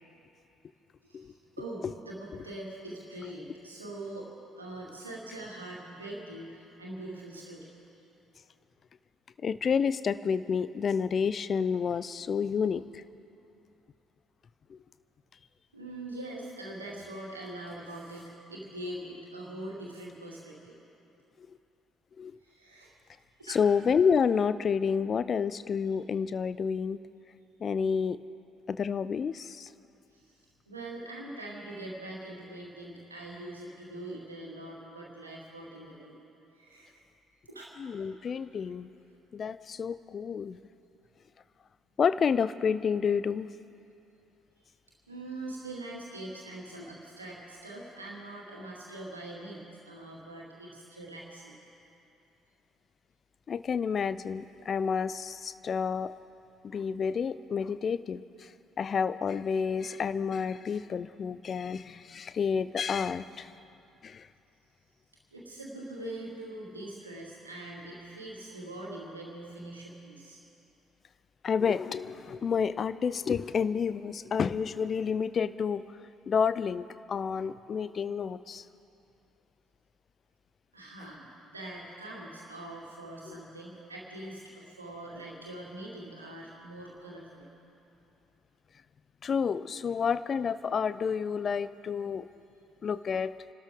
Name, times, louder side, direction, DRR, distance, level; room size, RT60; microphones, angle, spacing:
voice 1, 1.0-4.3 4.6-7.7 15.7-20.8 22.4-23.0 23.4-23.6 30.1-30.3 30.7-36.1 36.5-37.0 37.5-37.7 45.1-51.6 65.3-70.4 80.7-87.5, right 1 dB, 85° right, -4 dB, 2.4 m, -43 dB
voice 2, 9.4-13.0 14.7-14.8 21.5-21.6 22.2-22.4 23.5-27.0 27.6-28.2 28.7-29.7 37.8-38.9 39.3-40.6 42.0-43.5 53.5-56.1 56.6-63.5 64.0-64.3 71.4-75.8 76.3-78.6 83.3-83.4 89.2-92.3 92.8-93.3, left 6 dB, 40° left, 15 dB, 0.5 m, -29 dB
28.5 x 13.0 x 3.7 m, 2.7 s
figure-of-eight pair, 50°, 0 cm